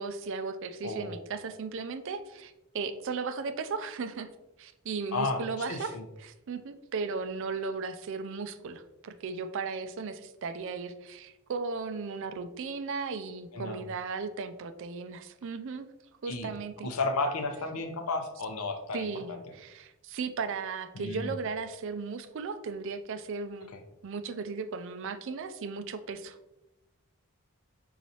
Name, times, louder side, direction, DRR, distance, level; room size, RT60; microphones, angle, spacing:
voice 1, 0.0-4.3 4.6-15.9 16.2-16.9 18.9-23.7 24.0-26.4, right 4 dB, 60° right, 10 dB, 0.4 m, -36 dB
voice 2, 0.8-1.2 5.1-6.0 13.5-13.8 16.3-16.5 16.8-19.4 20.9-21.3, left 3 dB, 75° left, 5 dB, 0.7 m, -33 dB
4.6 x 3.9 x 2.8 m, 0.97 s
head